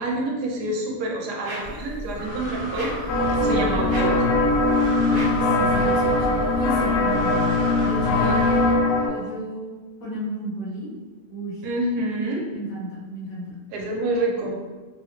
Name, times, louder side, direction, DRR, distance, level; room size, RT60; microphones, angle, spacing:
voice 1, 0.0-2.9 3.3-4.3 8.2-8.4 11.6-12.4 13.7-14.5, right 2 dB, 85° right, -1 dB, 1.2 m, -27 dB
sound 1, 1.4-1.8 2.7-3.1 3.9-4.3 5.1-5.5, right 1 dB, 55° right, 1.1 m, -36 dB
Breathing, 1.6-8.7, equal, 55° left, 1.0 m, -32 dB
sound 2, 3.1-9.1, left 2 dB, 85° left, 1.2 m, -21 dB
voice 2, 3.3-3.7 5.1-7.5 7.8-8.3 9.0-9.6 10.0-10.9 11.3-11.6 12.5-13.6, right 1 dB, 70° left, -7 dB, 1.6 m, -33 dB
3.4 x 2.4 x 3.0 m, 1.3 s
omnidirectional pair, 1.7 m